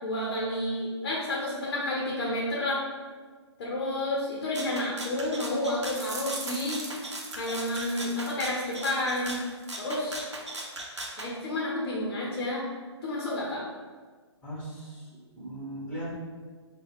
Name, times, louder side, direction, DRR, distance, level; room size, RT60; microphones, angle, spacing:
voice 1, 0.0-2.8 3.6-6.8 7.4-9.4 9.8-10.2 11.2-12.7 13.0-13.7, left 1 dB, 45° left, -4 dB, 0.8 m, -30 dB
Rattle (instrument), 4.5-11.3, right 2 dB, 70° right, 0.7 m, -39 dB
sound 1, 5.9-9.7 10.0-10.8, right 3 dB, 35° right, 0.6 m, -42 dB
voice 2, 14.4-16.1, right 1 dB, 5° left, -8 dB, 1.3 m, -38 dB
3.9 x 2.3 x 4.2 m, 1.5 s
figure-of-eight pair, 130°, 15 cm